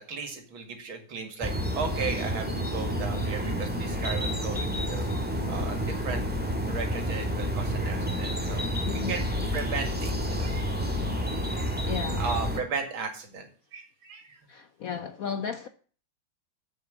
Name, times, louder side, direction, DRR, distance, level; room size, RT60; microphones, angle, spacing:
voice 1, 0.1-6.2 6.7-9.2 9.5-10.7 11.0-11.4 11.8-11.9 12.2-14.4, right 5 dB, 75° right, 2.9 m, -36 dB
sound 1, 1.4-12.6, equal, 5° right, 1.7 m, -29 dB
voice 2, 11.8-12.2 14.5-15.7, left 7 dB, 65° left, 0.9 m, -34 dB
7.9 x 6.9 x 7.8 m
omnidirectional pair, 2.2 m